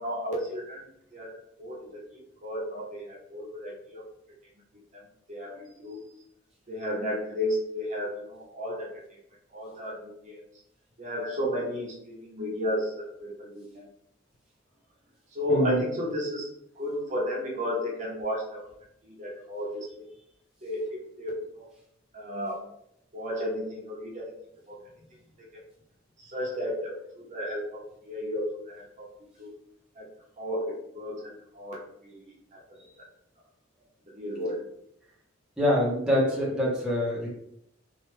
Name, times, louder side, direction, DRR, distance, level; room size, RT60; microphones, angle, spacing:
voice 1, 0.0-4.1 4.9-6.0 6.7-9.2 9.5-10.4 11.0-13.9 15.3-16.5 16.8-18.7 19.0-20.1 20.6-21.7 22.1-22.6 23.1-24.3 24.7-24.8 25.4-25.6 26.2-29.5 30.0-30.1 30.4-32.8 34.1-34.6, equal, 35° right, -3 dB, 0.7 m, -33 dB
voice 2, 15.5-15.8 35.6-37.3, left 1 dB, 5° right, -6 dB, 0.7 m, -25 dB
3.2 x 2.2 x 3.2 m, 0.73 s
head